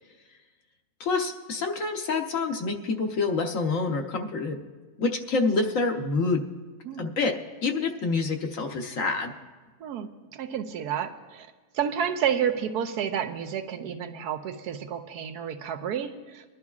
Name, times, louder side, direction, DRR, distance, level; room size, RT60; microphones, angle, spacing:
voice 1, 1.0-4.6 5.0-6.4 7.0-7.3 7.6-9.3, left 3 dB, 60° left, 3 dB, 1.3 m, -27 dB
voice 2, 9.8-11.5 11.7-16.4, right 8 dB, 85° right, 6 dB, 1.3 m, -30 dB
23.0 x 11.5 x 2.4 m, 1.3 s
omnidirectional pair, 1.6 m